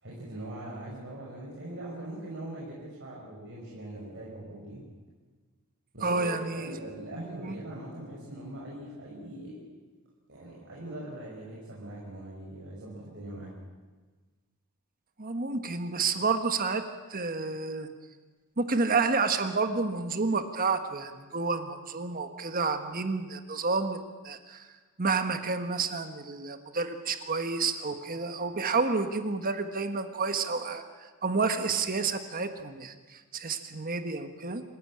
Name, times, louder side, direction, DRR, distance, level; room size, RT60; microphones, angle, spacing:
voice 1, 0.0-4.9 5.9-9.6 10.3-13.5, right 1 dB, 55° right, -5 dB, 5.7 m, -41 dB
voice 2, 6.0-6.7 7.5-7.6 15.2-16.8 17.1-17.9 18.6-24.7 25.0-30.8 31.2-34.6, right 4 dB, 40° right, 8 dB, 1.4 m, -30 dB
27.0 x 16.0 x 8.8 m, 1.4 s
head